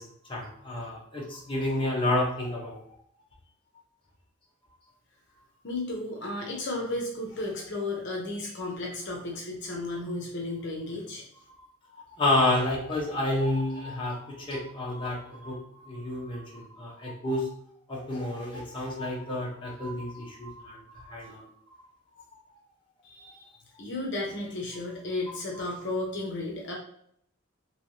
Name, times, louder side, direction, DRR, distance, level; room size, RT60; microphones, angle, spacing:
voice 1, 0.0-2.8 11.5-11.6 12.0-17.5 17.9-21.8 25.5-25.6, left 1 dB, 25° left, -4 dB, 0.9 m, -30 dB
voice 2, 5.6-11.2 23.0-23.5 23.8-26.8, left 2 dB, 60° left, -1 dB, 0.8 m, -34 dB
3.3 x 3.1 x 2.7 m, 0.68 s
head